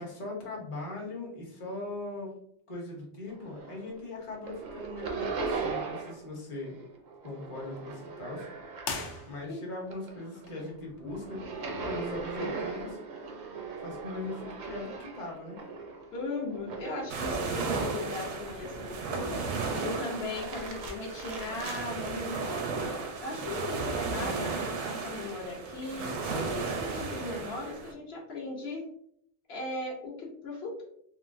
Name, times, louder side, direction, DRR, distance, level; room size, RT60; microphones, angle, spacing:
voice 1, 0.0-2.4 2.7-6.7 7.2-8.5 9.3-13.3 13.8-15.6, left 2 dB, 30° left, -2 dB, 0.7 m, -40 dB
sound 1, 3.3-4.0 4.3-6.3 6.6-9.4 9.8-18.1 18.6-19.3 20.1-21.9, right 4 dB, 55° right, 0.5 m, -39 dB
sound 2, 8.8-9.8, left 4 dB, 90° left, 0.9 m, -38 dB
voice 2, 16.1-22.9 23.2-28.8 29.5-30.8, left 2 dB, 65° left, -1 dB, 0.9 m, -38 dB
sound 3, 17.1-27.9, right 4 dB, 80° right, 0.9 m, -34 dB
3.7 x 2.0 x 2.5 m, 0.66 s
omnidirectional pair, 1.2 m